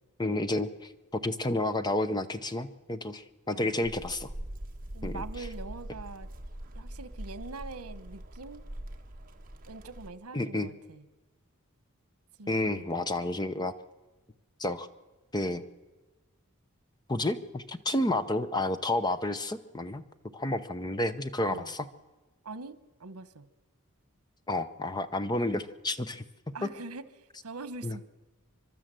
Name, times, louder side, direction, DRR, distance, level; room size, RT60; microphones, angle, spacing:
voice 1, 0.2-4.3 5.0-5.2 10.3-10.7 12.5-13.7 14.6-14.9 15.3-15.6 17.1-20.0 20.3-21.9 24.5-26.2 26.6-26.7 27.8-28.0, left 1 dB, 20° left, 11 dB, 0.8 m, -30 dB
voice 2, 3.5-3.9 4.9-6.3 6.7-8.7 9.7-11.0 12.4-13.1 21.4-21.7 22.4-23.5 26.5-27.0 27.4-28.0, right 3 dB, 85° right, 14 dB, 1.1 m, -43 dB
sound 1, 3.8-10.1, right 1 dB, 40° right, 1.5 m, -42 dB
30.0 x 12.0 x 7.6 m, 1.2 s
head